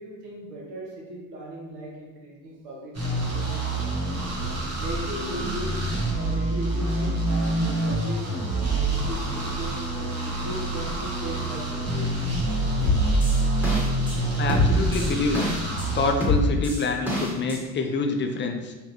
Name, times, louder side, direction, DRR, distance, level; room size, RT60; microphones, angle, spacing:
voice 1, 0.0-3.9 4.4-12.1, right 1 dB, 80° right, -2 dB, 1.0 m, -38 dB
sound 1, 2.9-16.1, right 2 dB, 35° right, 1.3 m, -26 dB
sound 2, 12.8-14.2 14.5-15.9 16.2-17.6, left 1 dB, 5° right, 1.3 m, -25 dB
voice 2, 14.4-15.4 15.9-18.7, left 3 dB, 25° left, 3 dB, 0.4 m, -26 dB
3.6 x 3.1 x 3.0 m, 1.2 s
hypercardioid pair, 70°, 47 cm